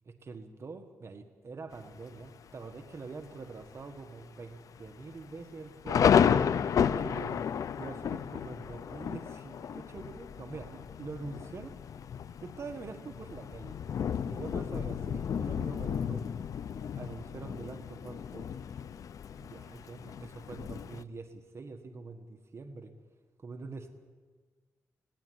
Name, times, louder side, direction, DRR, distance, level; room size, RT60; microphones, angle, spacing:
voice 1, 0.0-6.2 7.0-7.4 7.8-11.7 12.4-13.8 14.3-16.2 17.0-18.4 19.4-22.9 23.4-23.9, right 4 dB, 50° right, 6 dB, 1.6 m, -44 dB
Thunder, 1.7-2.3 2.8-2.9 3.2-3.6 4.0-4.1 4.8-21.0, left 8 dB, 75° left, 0.6 m, -32 dB
20.0 x 17.5 x 9.6 m, 1.4 s
cardioid pair, 85°, 6 cm